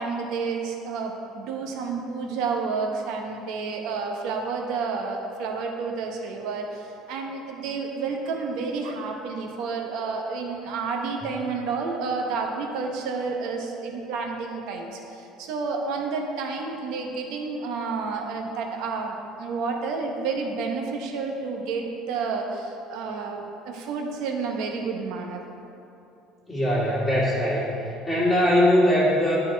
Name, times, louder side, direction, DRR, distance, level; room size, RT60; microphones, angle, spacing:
voice 1, 0.0-25.4, right 4 dB, 65° right, 1 dB, 1.0 m, -30 dB
voice 2, 26.5-27.7 28.1-29.4, equal, ahead, -8 dB, 2.1 m, -21 dB
12.0 x 4.3 x 4.5 m, 2.7 s
cardioid pair, 160°, 0 cm